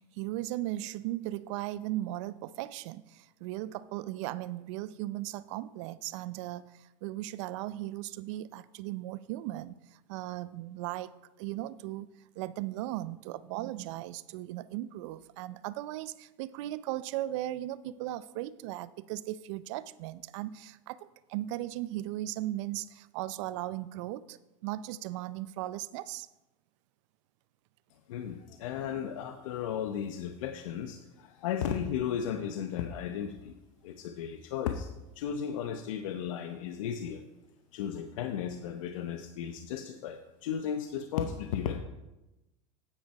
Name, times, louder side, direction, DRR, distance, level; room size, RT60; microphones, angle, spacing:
voice 1, 0.0-12.1 12.4-26.3, right 15 dB, 65° right, 17 dB, 0.5 m, -37 dB
voice 2, 28.1-33.6 33.8-34.9 35.2-37.2 37.7-41.8, left 8 dB, 75° left, 6 dB, 0.8 m, -35 dB
9.0 x 8.9 x 4.7 m, 1.0 s
supercardioid pair, 115°, 17 cm